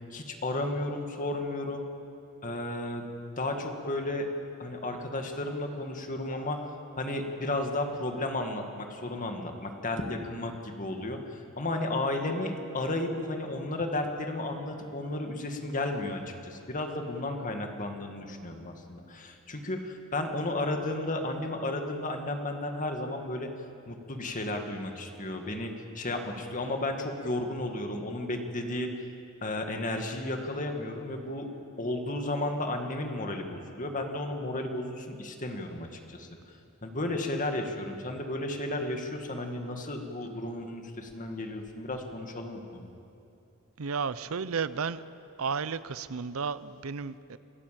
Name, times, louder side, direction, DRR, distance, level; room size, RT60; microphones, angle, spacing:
voice 1, 0.1-1.9 2.4-3.0 3.4-4.3 4.6-6.7 7.0-23.5 23.9-29.1 29.4-31.5 31.8-42.9, left 2 dB, 35° left, 4 dB, 2.1 m, -33 dB
voice 2, 43.8-45.0 45.4-47.4, right 5 dB, 70° right, 15 dB, 0.6 m, -33 dB
26.5 x 15.5 x 7.7 m, 2.6 s
head